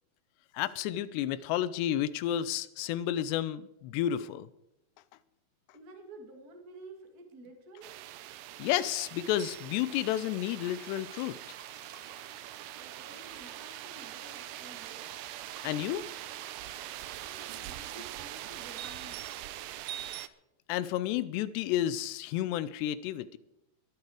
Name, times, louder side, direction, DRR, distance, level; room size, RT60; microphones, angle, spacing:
voice 1, 0.5-4.5 8.6-11.4 15.6-16.0 20.7-23.4, left 12 dB, 90° left, 15 dB, 2.8 m, -31 dB
voice 2, 5.7-8.0 12.8-15.1 17.2-19.4, right 2 dB, 35° right, 4 dB, 1.7 m, -51 dB
sound 1, 7.8-20.3, right 14 dB, 85° right, 1.9 m, -43 dB
sound 2, 9.9-19.9, right 7 dB, 55° right, 1.9 m, -52 dB
22.0 x 9.7 x 4.8 m, 0.86 s
omnidirectional pair, 4.8 m